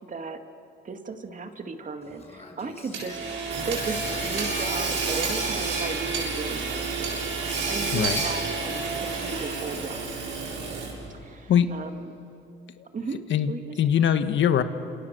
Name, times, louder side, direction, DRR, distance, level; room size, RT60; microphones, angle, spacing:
voice 1, 0.1-0.4 0.8-3.2 3.6-10.1 11.2-12.1 12.9-13.2 13.5-13.7, right 4 dB, 40° right, 5 dB, 2.4 m, -36 dB
Speech, 2.0-5.9, left 2 dB, 30° left, 6.3 m, -44 dB
Hammer / Sawing, 2.9-11.1, right 4 dB, 75° right, 7.3 m, -29 dB
voice 2, 13.8-14.6, left 9 dB, 70° left, 9 dB, 1.5 m, -21 dB
29.5 x 27.0 x 6.9 m, 2.7 s
cardioid pair, 90°, 20 cm